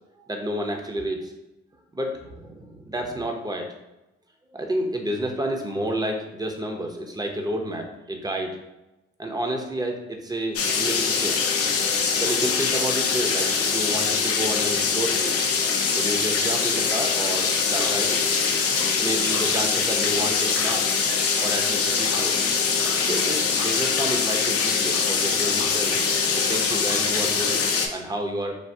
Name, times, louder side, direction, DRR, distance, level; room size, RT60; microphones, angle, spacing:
voice 1, 0.3-1.3 1.9-3.7 4.5-8.5 9.2-11.3 12.2-15.3 15.9-18.2 19.0-20.8 21.4-22.4 23.0-26.0 26.5-27.6 27.9-28.6, right 1 dB, 10° right, 3 dB, 0.6 m, -30 dB
sound 1, 10.6-27.9, left 5 dB, 50° left, 0.6 m, -23 dB
3.3 x 2.2 x 2.7 m, 0.98 s
supercardioid pair, 50°, 31 cm